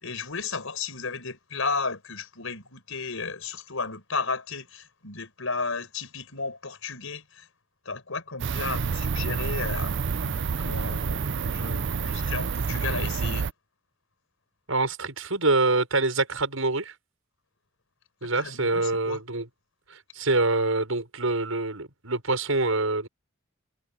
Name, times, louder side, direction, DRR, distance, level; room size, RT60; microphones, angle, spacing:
voice 1, 0.0-7.5 7.8-9.9 10.2-13.5 18.3-19.2, left 4 dB, 80° left, 4.9 m, -34 dB
sound 1, 8.4-13.5, right 5 dB, 60° right, 0.6 m, -28 dB
voice 2, 14.7-16.9 18.2-19.5 19.9-23.1, right 2 dB, 85° right, 6.4 m, -25 dB
head